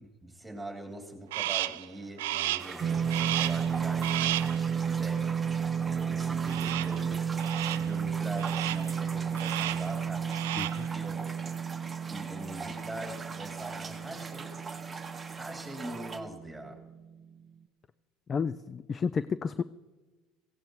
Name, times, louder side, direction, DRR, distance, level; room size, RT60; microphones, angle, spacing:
voice 1, 0.0-4.1 4.5-10.3 10.7-11.3 12.1-14.9 15.2-16.8, right 1 dB, 5° right, 1 dB, 3.0 m, -43 dB
Crow, 1.3-1.9 2.2-2.8 3.1-3.7 4.0-4.6 6.5-7.0 7.4-7.9 8.4-8.9 9.3-9.9 10.2-10.9, right 17 dB, 85° right, 0.4 m, -33 dB
sound 1, 2.6-16.2, right 4 dB, 20° right, 1.0 m, -42 dB
sound 2, 2.8-17.2, right 7 dB, 40° right, 0.7 m, -33 dB
voice 2, 10.6-10.9 18.3-19.6, left 6 dB, 30° left, 15 dB, 0.3 m, -31 dB
18.0 x 16.0 x 3.2 m, 1.3 s
supercardioid pair, 100°, 0 cm